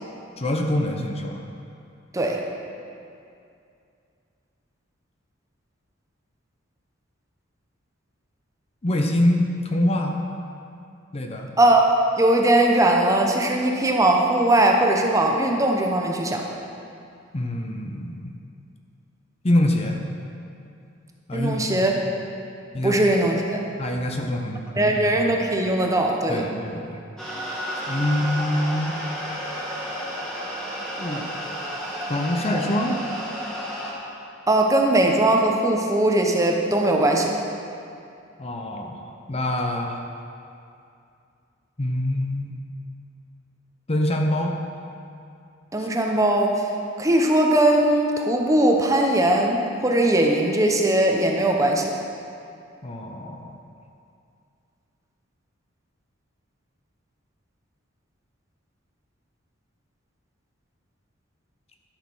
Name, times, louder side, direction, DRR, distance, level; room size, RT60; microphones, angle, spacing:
voice 1, 0.4-1.5 8.8-10.2 11.1-11.5 17.3-18.3 19.4-20.0 21.3-21.7 22.7-23.0 23.8-25.4 26.3-27.0 27.9-29.0 31.0-31.3 32.1-33.0 38.4-39.0 39.3-40.0 41.8-42.6 43.9-44.6 45.8-45.9 52.8-53.6, left 1 dB, 30° left, 3 dB, 0.8 m, -25 dB
voice 2, 11.6-11.9 12.2-16.4 21.3-21.9 22.8-23.6 24.8-26.4 34.5-37.3 45.7-46.7 47.0-51.9, right 1 dB, 15° right, 1 dB, 0.9 m, -20 dB
sound 1, 27.2-33.9, equal, 5° left, 1.9 m, -31 dB
11.5 x 6.5 x 6.2 m, 2.5 s
head